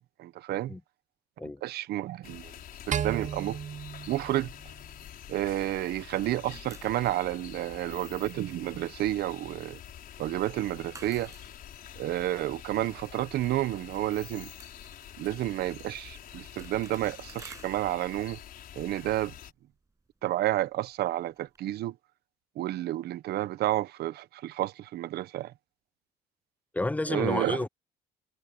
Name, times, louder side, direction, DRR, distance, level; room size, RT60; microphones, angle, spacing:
voice 1, 0.2-0.7 1.6-2.5 2.9-3.6 4.1-4.5 5.3-9.8 10.2-11.3 12.0-14.5 15.2-18.4 18.8-19.3 20.2-21.9 22.6-25.5 27.1-27.6, right 14 dB, 70° right, 1.1 m, -30 dB
sound 1, 2.2-19.5, left 10 dB, 60° left, 6.0 m, -47 dB
sound 2, 2.9-5.3, right 9 dB, 45° right, 1.4 m, -34 dB
sound 3, 3.6-5.9 6.1-21.6, right 3 dB, 20° right, 7.9 m, -57 dB
voice 2, 26.7-27.7, left 2 dB, 10° left, 0.4 m, -30 dB
cardioid pair, 110°, 17 cm